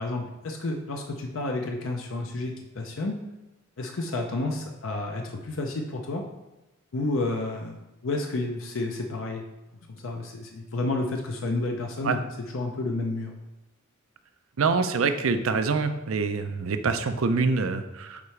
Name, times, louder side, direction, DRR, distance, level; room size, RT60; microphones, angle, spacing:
voice 1, 0.0-3.2 3.8-6.2 6.9-9.5 9.9-12.2 12.5-13.3, left 2 dB, 75° left, 2 dB, 0.6 m, -30 dB
voice 2, 14.6-18.2, right 4 dB, 85° right, 9 dB, 0.5 m, -25 dB
7.1 x 4.7 x 3.3 m, 1.0 s
head